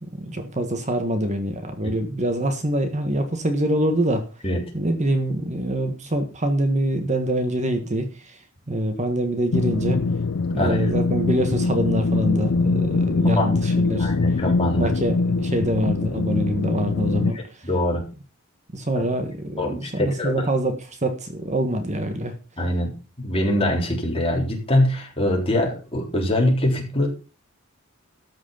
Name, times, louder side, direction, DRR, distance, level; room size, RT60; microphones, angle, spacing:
voice 1, 0.0-4.2 4.7-8.3 8.7-10.0 10.5-14.1 14.7-17.4 18.7-20.7 21.0-22.3, right 1 dB, 35° right, 6 dB, 1.6 m, -25 dB
sound 1, 9.5-17.3, left 3 dB, 65° left, 0.5 m, -23 dB
voice 2, 10.6-10.9 13.4-13.5 14.0-14.9 17.3-18.0 19.0-19.1 19.6-20.5 22.6-22.9 23.2-27.1, left 1 dB, 25° left, 0 dB, 3.7 m, -23 dB
13.0 x 6.4 x 5.7 m, 0.34 s
head